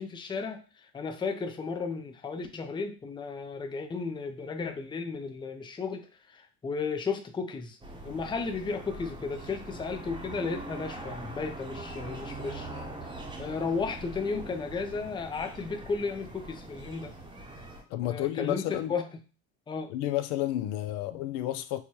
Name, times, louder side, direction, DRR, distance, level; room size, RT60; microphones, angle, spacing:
voice 1, 0.0-7.8 8.0-12.7 13.0-17.1 18.0-19.1 19.7-19.9, left 4 dB, 10° left, 0.5 m, -34 dB
sound 1, 7.8-17.8, right 2 dB, 10° right, 0.9 m, -42 dB
voice 2, 17.9-18.9 19.9-21.8, left 13 dB, 65° left, 0.5 m, -31 dB
4.6 x 2.2 x 2.9 m
supercardioid pair, 85°, 39 cm